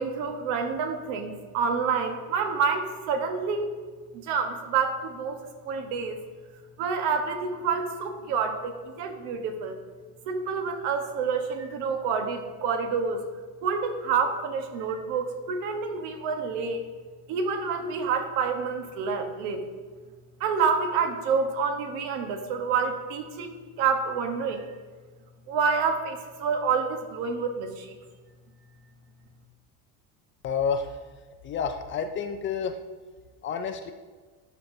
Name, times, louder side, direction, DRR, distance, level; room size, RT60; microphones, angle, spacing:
voice 1, 0.0-3.7 4.1-6.2 6.8-9.8 10.3-13.3 13.6-16.8 17.3-19.6 20.4-24.7 25.5-27.9, right 5 dB, 80° right, 5 dB, 1.2 m, -28 dB
voice 2, 30.4-31.0 31.4-32.8 33.4-33.9, left 6 dB, 30° left, 8 dB, 0.4 m, -29 dB
12.0 x 5.6 x 2.6 m, 1.4 s
cardioid pair, 135°, 40 cm